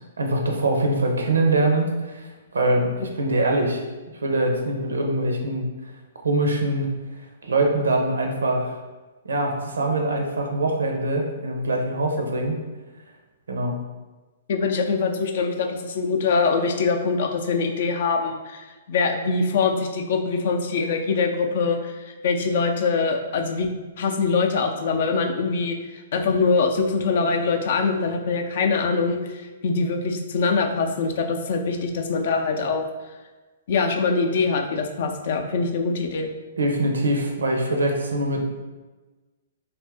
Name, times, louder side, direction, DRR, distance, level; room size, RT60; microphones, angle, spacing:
voice 1, 0.2-3.8 4.2-5.7 6.2-6.9 7.4-8.8 9.2-12.6 13.5-13.7 36.6-38.5, right 2 dB, 85° right, 2 dB, 0.6 m, -23 dB
voice 2, 14.5-23.7 24.0-32.8 33.7-36.3, left 4 dB, 60° left, 4 dB, 0.4 m, -23 dB
2.6 x 2.4 x 3.4 m, 1.3 s
hypercardioid pair, 130°, 0 cm